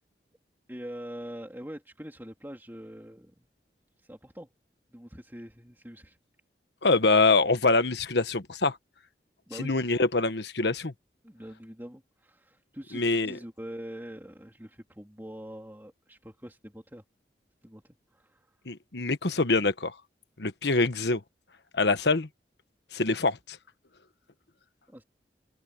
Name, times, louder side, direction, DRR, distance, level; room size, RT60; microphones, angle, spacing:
voice 1, 0.7-3.5 4.0-4.5 4.9-6.2 9.5-9.8 11.2-17.0 17.6-18.6 24.9-25.0, equal, 10° right, 3.1 m, -44 dB
voice 2, 6.8-8.8 9.6-10.9 12.9-13.4 18.7-19.9 20.4-21.2 21.7-22.3 22.9-23.6, left 3 dB, 75° left, 1.2 m, -25 dB
open air
head